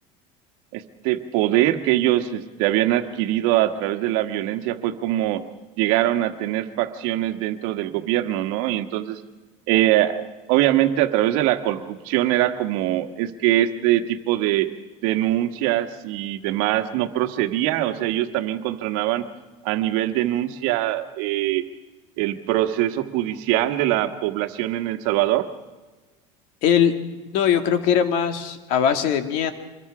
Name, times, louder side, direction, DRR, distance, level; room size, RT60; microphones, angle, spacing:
voice 1, 0.7-5.4 5.8-9.2 9.7-10.2 10.5-14.7 15.0-19.2 19.6-21.6 22.2-25.5, right 14 dB, 65° right, 9 dB, 1.5 m, -22 dB
voice 2, 26.6-26.9 27.3-29.5, left 8 dB, 60° left, 8 dB, 2.1 m, -20 dB
25.5 x 21.5 x 4.9 m, 1.2 s
cardioid pair, 145°, 15 cm